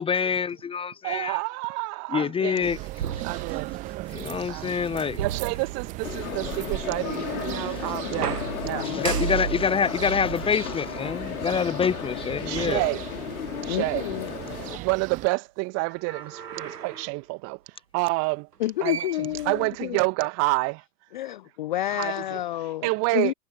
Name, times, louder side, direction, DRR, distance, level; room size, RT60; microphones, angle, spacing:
voice 1, 0.0-1.4 2.1-2.8 4.1-5.2 7.5-7.7 8.8-12.8, left 6 dB, 10° left, 0.9 m, -26 dB
voice 2, 1.0-2.8 3.2-3.7 4.5-4.8 5.2-8.4 8.6-8.9 12.4-13.1 13.6-14.0 14.8-18.5 18.8-20.8 21.9-22.4 22.8-23.3, right 29 dB, 35° right, 1.7 m, -28 dB
sound 1, 2.6-15.3, right 19 dB, 15° right, 0.6 m, -37 dB
sound 2, 3.0-4.1 5.2-6.3 8.1-11.7 12.5-12.6 15.9-17.2 18.5-18.6 18.9-20.1, right 8 dB, 75° right, 1.0 m, -35 dB
sound 3, 6.0-14.8, left 10 dB, 60° left, 2.4 m, -35 dB
voice 3, 7.0-7.4 8.7-9.3 13.7-14.3 18.6-20.0 21.1-23.3, left 14 dB, 35° left, 0.4 m, -30 dB
figure-of-eight pair, 100°, 47 cm